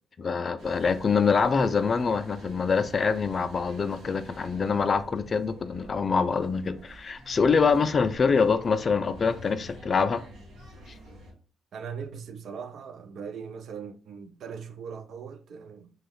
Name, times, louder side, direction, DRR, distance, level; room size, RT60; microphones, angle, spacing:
voice 1, 0.2-10.2, left 5 dB, 40° left, 0.3 m, -25 dB
sound 1, 0.6-11.3, right 1 dB, 90° right, 1.0 m, -48 dB
voice 2, 11.7-15.9, right 6 dB, 65° right, 0.4 m, -40 dB
3.0 x 2.2 x 3.4 m
cardioid pair, 90°, 0 cm